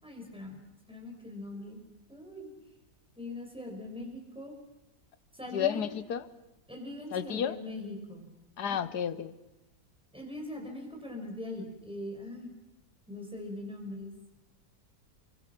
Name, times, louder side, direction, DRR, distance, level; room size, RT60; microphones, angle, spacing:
voice 1, 0.0-1.8 2.1-2.5 3.2-4.5 5.3-5.9 6.7-8.3 8.7-8.8 10.1-12.5 13.1-14.3, left 1 dB, 5° right, 1 dB, 5.8 m, -41 dB
voice 2, 5.5-6.3 7.1-7.6 8.6-9.3, left 9 dB, 75° left, 14 dB, 1.6 m, -31 dB
29.5 x 24.5 x 6.0 m, 0.99 s
omnidirectional pair, 1.8 m